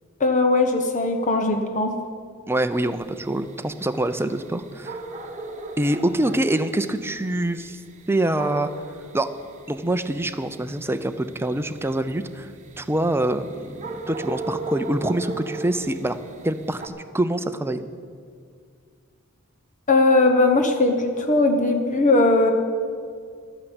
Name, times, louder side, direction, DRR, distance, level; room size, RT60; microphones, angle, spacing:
voice 1, 0.2-1.9 19.9-22.5, left 2 dB, 35° left, 5 dB, 1.0 m, -19 dB
voice 2, 2.5-5.0 5.8-7.8 8.1-8.7 9.1-9.3 9.7-12.5 12.8-16.2 16.4-17.8, right 1 dB, 10° right, 10 dB, 0.6 m, -25 dB
sound 1, 2.7-16.9, right 2 dB, 35° right, 1.2 m, -37 dB
12.5 x 10.0 x 8.0 m, 2.1 s
head